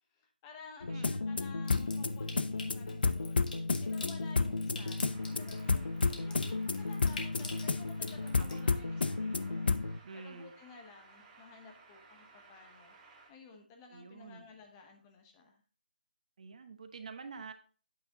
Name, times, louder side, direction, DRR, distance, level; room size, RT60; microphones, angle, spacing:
voice 1, 0.1-3.4 3.8-13.0 13.3-15.6, left 4 dB, 15° left, 3 dB, 0.9 m, -54 dB
sound 1, 0.8-10.0, left 3 dB, 75° left, 0.6 m, -32 dB
voice 2, 0.9-1.2 8.2-8.7 9.0-9.5 10.0-10.5 13.9-14.4 16.4-17.5, right 4 dB, 45° right, 8 dB, 1.0 m, -48 dB
Water tap faucet / Sink (filling or washing) / Trickle dribble, 1.6-8.6, left 3 dB, 55° left, 1.6 m, -48 dB
sound 2, 5.0-13.3, right 3 dB, 15° right, 1.4 m, -59 dB
8.4 x 6.3 x 2.8 m, 0.41 s
figure-of-eight pair, 160°, 5 cm